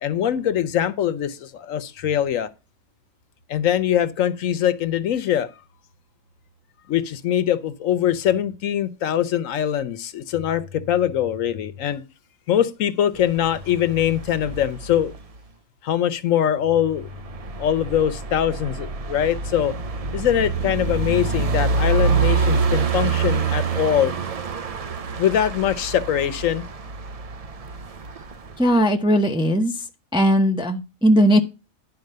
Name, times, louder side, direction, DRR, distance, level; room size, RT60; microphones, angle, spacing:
voice 1, 0.0-2.5 3.5-5.5 6.9-12.0 12.5-15.1 15.8-17.1 17.6-19.7 20.1-24.1 25.2-26.6, left 10 dB, 70° left, 1.1 m, -22 dB
sound 1, 13.2-15.4 17.0-28.8, right 5 dB, 75° right, 0.3 m, -26 dB
voice 2, 28.6-29.9 30.1-31.4, equal, 5° right, 0.6 m, -18 dB
10.5 x 4.3 x 6.6 m
omnidirectional pair, 1.4 m